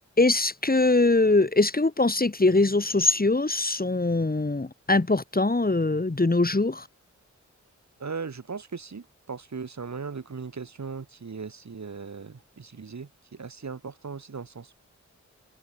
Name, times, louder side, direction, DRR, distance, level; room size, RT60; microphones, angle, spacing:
voice 1, 0.2-6.9, left 2 dB, 30° left, 5.4 m, -22 dB
voice 2, 8.0-14.7, right 5 dB, 65° right, 5.9 m, -38 dB
wide cardioid pair, 85°, 30 cm